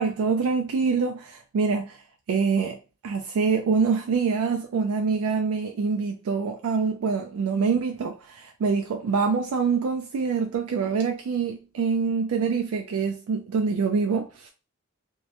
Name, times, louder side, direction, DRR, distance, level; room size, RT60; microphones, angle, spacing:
voice 1, 0.0-2.0 2.3-2.8 3.0-14.5, right 5 dB, 85° right, 0.3 m, -25 dB
2.1 x 2.0 x 2.8 m
head